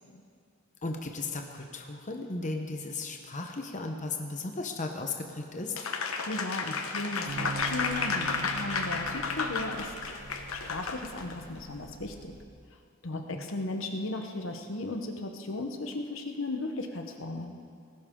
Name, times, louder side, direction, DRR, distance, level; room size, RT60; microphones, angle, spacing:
voice 1, 0.8-5.8 13.1-13.5, left 3 dB, 35° left, 3 dB, 1.0 m, -36 dB
Applause, 5.8-11.3, left 4 dB, 90° left, 1.2 m, -32 dB
voice 2, 6.3-9.9 10.5-12.3 13.0-17.6, left 2 dB, 70° left, 5 dB, 1.1 m, -36 dB
sound 1, 7.3-12.4, right 3 dB, 70° right, 1.1 m, -43 dB
18.5 x 16.5 x 3.8 m, 2.3 s
head